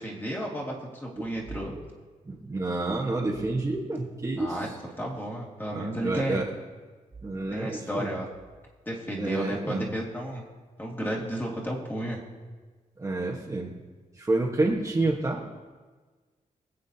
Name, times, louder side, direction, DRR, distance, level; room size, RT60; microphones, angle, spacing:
voice 1, 0.0-1.7 4.4-4.7 5.0-6.4 7.5-8.3 8.9-10.4 10.8-12.2, equal, 15° left, -3 dB, 2.2 m, -33 dB
voice 2, 2.2-4.8 5.7-6.5 7.2-8.1 9.2-9.9 13.0-13.8 14.1-15.4, right 2 dB, 20° right, -3 dB, 1.2 m, -29 dB
24.0 x 8.4 x 2.8 m, 1.4 s
wide cardioid pair, 145°, 14 cm